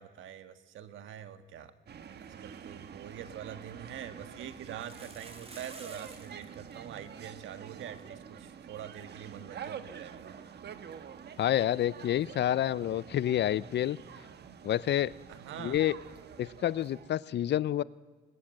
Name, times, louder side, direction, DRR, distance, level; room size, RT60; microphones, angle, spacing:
voice 1, 0.0-1.7 2.2-10.3 15.3-15.8, right 9 dB, 80° right, 10 dB, 1.6 m, -45 dB
sound 1, 1.9-17.2, right 7 dB, 55° right, 1.4 m, -47 dB
sound 2, 4.7-6.5 6.7-6.8 7.0-7.3 7.8-7.9 8.2-8.3 10.3-10.4, right 3 dB, 30° right, 4.0 m, -50 dB
voice 2, 11.4-14.0 14.6-15.1 15.6-16.0 16.4-17.8, left 11 dB, 60° left, 20 dB, 0.6 m, -28 dB
21.0 x 21.0 x 7.8 m, 1.3 s
cardioid pair, 90°, 20 cm